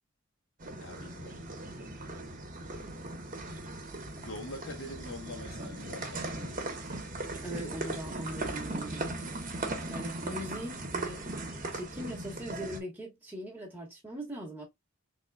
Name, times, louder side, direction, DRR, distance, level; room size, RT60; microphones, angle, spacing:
sound 1, 0.6-12.8, right 2 dB, 45° right, 1.2 m, -38 dB
voice 1, 0.8-1.5 4.2-6.7, left 1 dB, 80° left, 1.1 m, -44 dB
voice 2, 7.4-9.2 9.9-11.3 11.7-14.7, equal, 10° right, 1.3 m, -40 dB
3.8 x 3.6 x 2.3 m
head